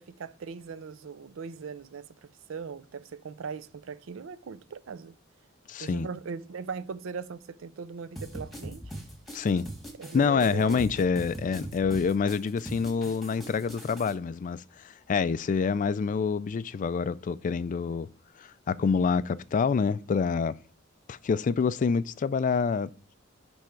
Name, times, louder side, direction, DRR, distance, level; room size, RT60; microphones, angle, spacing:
voice 1, 0.0-2.1 2.5-5.2 5.8-8.8 10.0-10.8, right 5 dB, 75° right, 0.5 m, -39 dB
voice 2, 5.7-6.1 9.3-9.7 10.1-18.1 18.4-20.6 21.1-22.9, left 5 dB, 40° left, 0.3 m, -27 dB
sound 1, 8.2-14.1, equal, ahead, 1.6 m, -41 dB
9.9 x 3.5 x 4.4 m
head